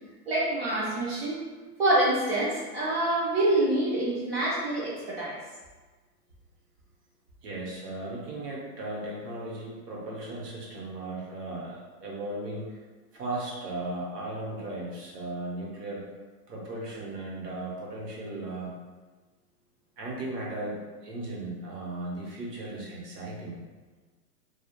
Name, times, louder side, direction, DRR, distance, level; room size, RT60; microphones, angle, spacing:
voice 1, 0.3-1.4 1.8-5.4, right 1 dB, 40° right, -6 dB, 0.5 m, -26 dB
voice 2, 7.4-12.8 13.1-16.1 16.5-18.7 20.0-23.6, right 2 dB, 75° right, -4 dB, 1.1 m, -36 dB
2.3 x 2.1 x 2.9 m, 1.3 s
hypercardioid pair, 160°, 48 cm